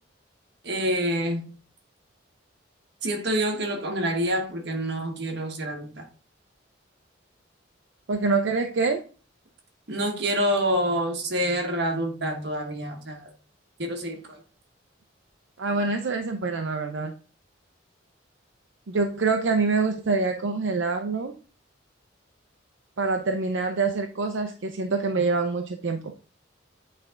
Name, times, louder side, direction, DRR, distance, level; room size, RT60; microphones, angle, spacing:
voice 1, 0.6-1.5 3.0-6.1 9.9-13.3 13.8-14.4, equal, 55° right, 1.3 m, -27 dB
voice 2, 8.1-9.0 15.6-17.1 18.9-21.3 23.0-26.1, right 4 dB, 75° right, 0.6 m, -25 dB
8.3 x 3.4 x 3.7 m
head